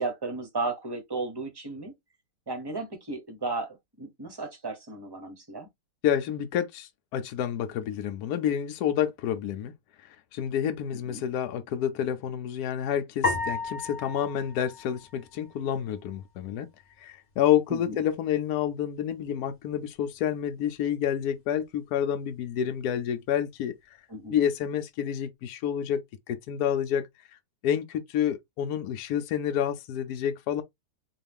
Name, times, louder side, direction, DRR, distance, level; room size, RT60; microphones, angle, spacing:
voice 1, 0.0-1.9 2.5-5.7 10.9-11.2 17.7-18.0 24.1-24.4, right 3 dB, 25° right, 0.6 m, -34 dB
voice 2, 6.0-9.7 10.0-16.7 17.0-23.7 24.3-26.0 26.3-27.1 27.6-30.6, left 9 dB, 70° left, 1.0 m, -29 dB
sound 1, 13.2-15.7, left 3 dB, 30° left, 0.9 m, -33 dB
3.9 x 2.3 x 3.4 m
omnidirectional pair, 1.8 m